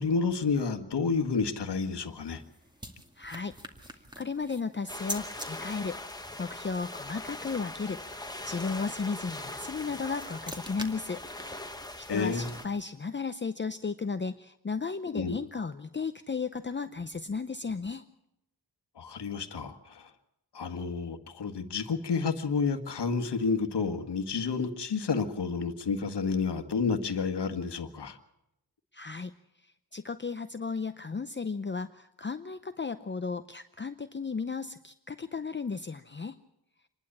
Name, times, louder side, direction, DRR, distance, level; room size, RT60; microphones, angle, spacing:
voice 1, 0.0-2.4 12.1-12.5 15.1-15.4 19.0-20.1 20.5-28.2, left 5 dB, 70° left, 8 dB, 1.7 m, -30 dB
sound 1, 1.9-5.5 9.6-13.0, equal, 10° right, 2.2 m, -45 dB
voice 2, 3.2-3.6 3.8-6.0 6.4-11.2 12.0-18.1 28.9-29.3 29.6-36.4, left 4 dB, 25° left, 9 dB, 0.7 m, -35 dB
sound 2, 4.9-12.7, left 2 dB, 10° left, 1.5 m, -41 dB
26.5 x 11.5 x 8.6 m, 0.86 s
cardioid pair, 75°, 42 cm